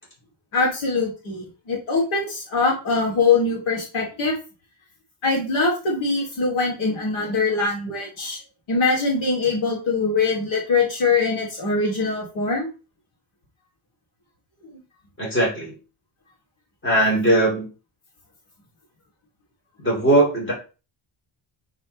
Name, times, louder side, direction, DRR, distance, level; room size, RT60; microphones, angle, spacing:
voice 1, 0.5-4.3 5.2-8.4 8.7-12.7, left 4 dB, 70° left, -3 dB, 2.8 m, -22 dB
voice 2, 15.2-15.7 16.8-17.7 19.8-20.5, right 1 dB, 25° left, -4 dB, 3.5 m, -19 dB
8.9 x 4.3 x 3.2 m, 0.32 s
wide cardioid pair, 175°, 49 cm